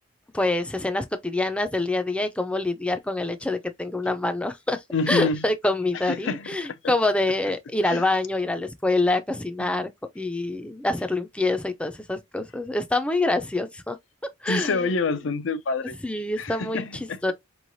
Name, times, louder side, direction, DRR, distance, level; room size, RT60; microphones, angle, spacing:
voice 1, 0.3-9.9 10.2-14.0 14.4-14.9 16.0-17.3, left 2 dB, 5° left, 0.4 m, -26 dB
voice 2, 4.9-5.4 6.1-6.4 7.9-8.0 14.5-15.9 16.4-17.2, left 4 dB, 70° left, 0.5 m, -26 dB
4.6 x 3.1 x 2.6 m
head